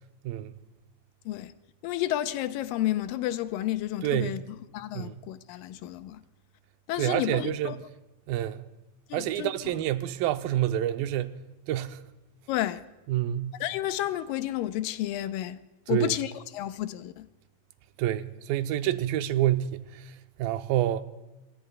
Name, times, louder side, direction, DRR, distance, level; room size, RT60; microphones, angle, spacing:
voice 1, 0.2-0.6 4.0-4.4 4.9-5.2 7.0-7.8 8.3-8.7 9.1-11.4 11.7-12.0 13.1-13.6 15.9-16.1 18.0-21.0, right 12 dB, 90° right, 2.5 m, -28 dB
voice 2, 1.8-4.4 4.7-6.2 6.9-7.8 9.1-9.5 12.5-12.8 13.6-15.6 15.9-17.3, left 14 dB, 85° left, 2.3 m, -31 dB
28.5 x 17.0 x 2.3 m
omnidirectional pair, 4.1 m